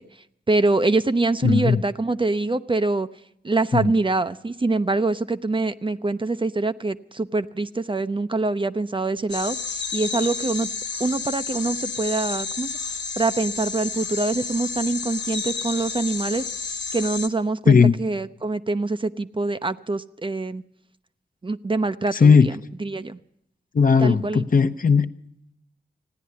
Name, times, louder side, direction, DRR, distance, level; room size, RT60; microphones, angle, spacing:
voice 1, 0.5-3.1 3.4-10.7 11.0-16.5 16.9-20.6 21.4-22.5 22.8-23.2 24.0-24.4, right 3 dB, 30° right, 0.6 m, -24 dB
voice 2, 1.4-1.8 3.7-3.9 17.7-17.9 22.1-22.5 23.7-25.1, left 5 dB, 50° left, 0.8 m, -16 dB
sound 1, 9.3-17.3, left 5 dB, 80° left, 1.3 m, -31 dB
15.5 x 10.0 x 9.5 m
cardioid pair, 50°, 18 cm